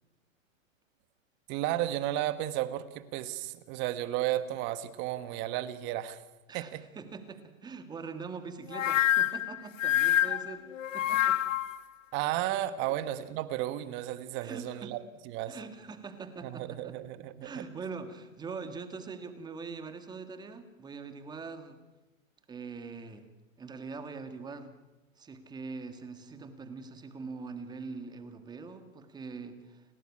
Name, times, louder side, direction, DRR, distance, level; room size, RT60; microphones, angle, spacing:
voice 1, 1.5-6.2 6.5-6.8 12.1-15.6 16.4-17.5, right 13 dB, 25° right, 13 dB, 1.4 m, -33 dB
voice 2, 6.5-10.6 10.9-11.4 14.4-14.9 15.5-17.0 17.4-21.8 22.5-23.3 23.6-24.7 25.2-29.8, right 4 dB, 10° right, 9 dB, 1.7 m, -43 dB
sound 1, 8.7-11.8, left 12 dB, 65° left, 1.1 m, -27 dB
30.0 x 12.5 x 9.8 m, 1.1 s
hypercardioid pair, 150°, 41 cm